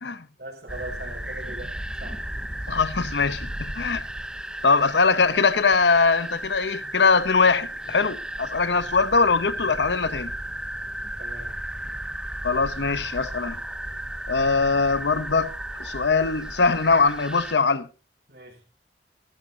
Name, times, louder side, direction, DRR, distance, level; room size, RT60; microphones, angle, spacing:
voice 1, 0.4-2.2 11.2-11.6 18.3-18.6, right 2 dB, 65° right, 5.4 m, -40 dB
sound 1, 0.7-17.5, right 1 dB, 5° right, 0.6 m, -34 dB
voice 2, 2.7-4.0 4.6-10.3 12.4-13.6 14.3-15.5 15.8-17.9, left 4 dB, 80° left, 0.9 m, -22 dB
18.0 x 14.0 x 2.8 m
head